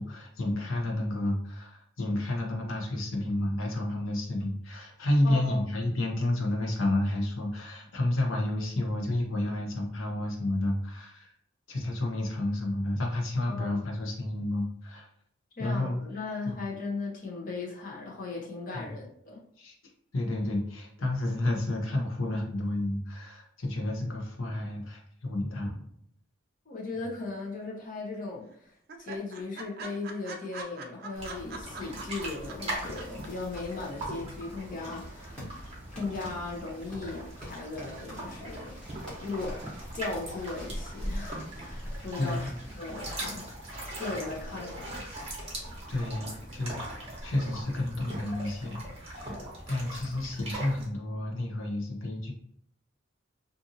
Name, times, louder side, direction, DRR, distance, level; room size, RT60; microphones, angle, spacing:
voice 1, 0.0-11.3 11.7-15.1 15.6-16.0 16.4-16.5 18.7-19.0 19.6-19.7 20.1-25.9 42.2-42.6 45.9-52.3, left 1 dB, 80° left, 0 dB, 0.8 m, -31 dB
voice 2, 5.2-5.6 13.5-13.9 15.6-19.4 26.7-28.7 29.0-38.8 39.2-39.6 39.9-43.5 44.0-45.0, left 3 dB, 40° left, -3 dB, 0.7 m, -37 dB
sound 1, 27.2-27.9 28.1-28.2 28.5-28.6 28.9-33.3 33.6-33.7, right 4 dB, 50° right, 0.4 m, -42 dB
sound 2, 31.1-50.9, right 1 dB, 30° right, 0.8 m, -40 dB
sound 3, 32.8-44.9, equal, 5° left, 1.0 m, -50 dB
2.6 x 2.6 x 2.6 m, 0.69 s
head